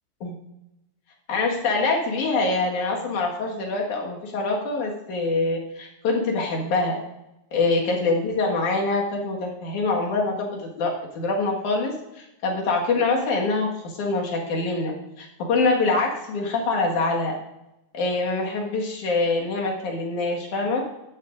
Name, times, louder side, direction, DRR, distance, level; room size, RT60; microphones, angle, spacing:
voice 1, 1.3-7.0 7.5-17.3 17.9-20.8, left 3 dB, 80° left, -1 dB, 3.2 m, -25 dB
14.0 x 10.5 x 2.6 m, 0.92 s
omnidirectional pair, 3.4 m